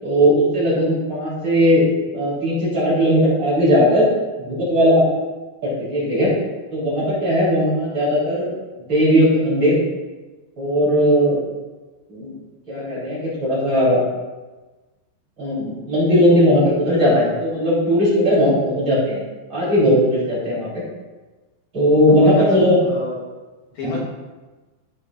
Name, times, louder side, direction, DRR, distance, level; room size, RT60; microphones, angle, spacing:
voice 1, 0.0-1.8 2.1-4.1 4.4-5.0 5.6-6.3 6.7-8.5 8.9-9.8 10.6-11.4 12.1-12.3 12.7-14.0 15.4-19.2 19.5-20.8 21.7-22.8 23.8-23.9, equal, 25° right, -8 dB, 3.5 m, -17 dB
voice 2, 22.2-23.3 23.7-24.0, left 2 dB, 70° left, -3 dB, 2.3 m, -29 dB
13.0 x 9.6 x 2.5 m, 1.2 s
omnidirectional pair, 5.9 m